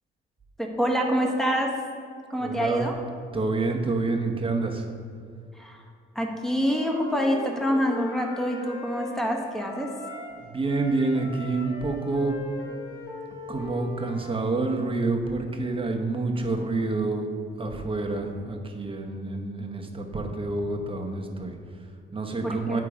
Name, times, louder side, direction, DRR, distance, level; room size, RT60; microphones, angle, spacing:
voice 1, 0.6-1.8 2.3-3.0 5.6-5.8 6.1-9.9 22.4-22.8, equal, ahead, 0 dB, 1.2 m, -26 dB
voice 2, 2.4-2.9 3.3-4.9 10.4-12.4 13.5-17.3 17.6-22.8, right 3 dB, 25° right, 2 dB, 1.0 m, -28 dB
Wind instrument woodwind instrument, 6.6-10.4 10.7-14.5, left 2 dB, 75° left, 1.8 m, -40 dB
9.9 x 3.7 x 4.9 m, 2.3 s
cardioid pair, 90°, 20 cm